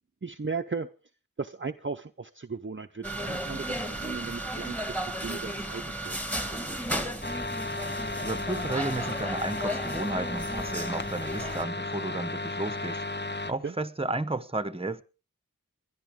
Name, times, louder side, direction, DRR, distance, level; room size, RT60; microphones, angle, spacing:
voice 1, 0.2-0.9 1.4-6.8 13.6-13.7, right 4 dB, 35° right, 0.7 m, -37 dB
sound 1, 3.0-11.6, right 1 dB, 5° left, 2.2 m, -34 dB
sound 2, 7.2-13.5, left 2 dB, 30° left, 0.9 m, -34 dB
voice 2, 8.2-13.0 13.4-15.0, right 2 dB, 15° right, 1.0 m, -33 dB
29.0 x 11.5 x 3.7 m
wide cardioid pair, 45°, 36 cm